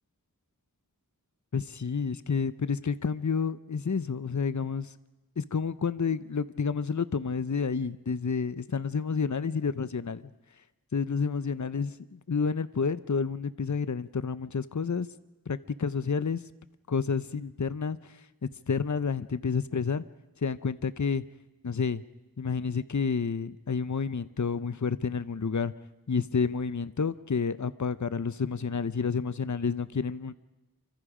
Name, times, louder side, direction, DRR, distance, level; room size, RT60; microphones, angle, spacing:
voice 1, 1.5-4.9 5.4-10.2 10.9-15.1 15.5-16.4 16.9-20.0 20.4-21.2 21.6-22.0 22.4-25.7 26.1-30.3, left 5 dB, 55° left, 15 dB, 0.8 m, -30 dB
28.0 x 25.0 x 5.0 m, 1.1 s
wide cardioid pair, 40°, 36 cm